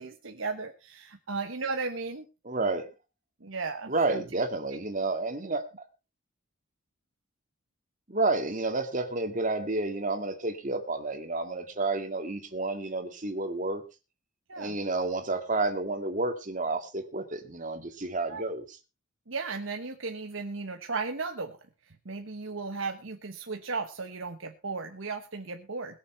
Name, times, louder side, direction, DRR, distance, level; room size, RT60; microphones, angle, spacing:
voice 1, 0.0-2.3 3.4-4.2 14.5-14.7 18.3-18.4 19.3-21.6 22.0-26.0, right 4 dB, 80° right, 5 dB, 1.2 m, -35 dB
voice 2, 2.4-2.9 3.9-5.6 8.1-13.8 14.6-18.8, right 3 dB, 40° right, 6 dB, 2.1 m, -30 dB
21.5 x 7.3 x 4.4 m, 0.31 s
head